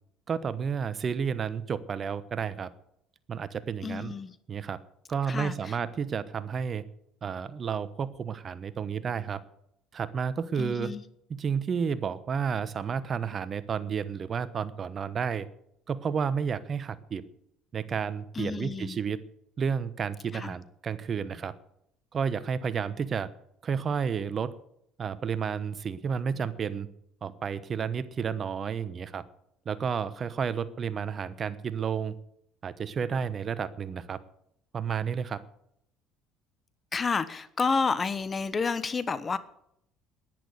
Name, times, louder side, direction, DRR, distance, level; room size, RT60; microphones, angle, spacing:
voice 1, 0.3-2.7 3.3-4.1 4.5-4.8 5.1-6.8 7.2-9.4 9.9-10.9 11.3-15.5 15.9-17.2 17.7-19.2 19.6-21.5 22.1-23.3 23.6-24.5 25.0-26.9 27.2-29.2 29.6-32.1 32.6-34.2 34.7-35.4, right 6 dB, 40° right, 16 dB, 1.0 m, -31 dB
voice 2, 3.8-4.3 5.2-5.8 10.6-11.0 18.3-19.0 20.3-20.6 36.9-39.4, left 4 dB, 30° left, 16 dB, 1.1 m, -30 dB
11.0 x 10.5 x 8.3 m, 0.73 s
supercardioid pair, 85°, 0 cm